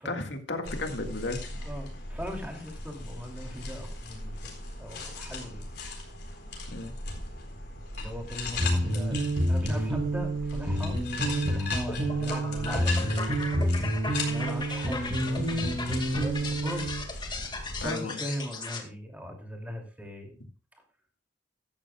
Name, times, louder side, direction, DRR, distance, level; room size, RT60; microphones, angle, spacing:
voice 1, 0.1-1.5 6.7-6.9 17.8-18.2, left 2 dB, 80° left, 5 dB, 1.9 m, -34 dB
sound 1, 0.6-17.9, left 3 dB, 65° left, 4.0 m, -39 dB
voice 2, 1.6-4.5 4.8-5.7 8.0-9.2 9.5-13.3 14.3-16.9 17.8-20.3, equal, 10° right, 2 dB, 2.7 m, -39 dB
sound 2, 8.6-17.0, right 1 dB, 30° right, 5.0 m, -28 dB
sound 3, 11.9-18.8, left 3 dB, 25° left, 2.0 m, -37 dB
14.5 x 12.5 x 2.3 m, 0.36 s
head